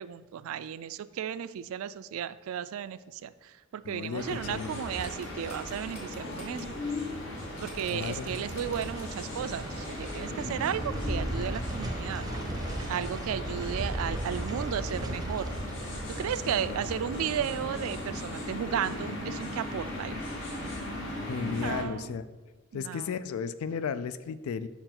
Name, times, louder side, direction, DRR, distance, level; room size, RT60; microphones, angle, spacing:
voice 1, 0.0-6.7 7.6-12.3 12.9-15.5 16.1-20.2 21.6-22.1 22.7-23.2, right 9 dB, 80° right, 15 dB, 0.3 m, -34 dB
voice 2, 3.8-4.8 7.9-8.3 16.4-16.7 21.3-22.2 22.7-24.7, left 6 dB, 90° left, 14 dB, 0.3 m, -34 dB
sound 1, 4.2-21.8, left 1 dB, 60° left, 1.6 m, -38 dB
sound 2, 4.9-6.6 7.0-7.1 7.6-9.2 9.7-9.8, left 1 dB, 30° left, 1.6 m, -49 dB
sound 3, 7.4-20.5 20.8-20.9, right 1 dB, 20° right, 0.6 m, -38 dB
5.6 x 4.5 x 5.9 m, 1.3 s
head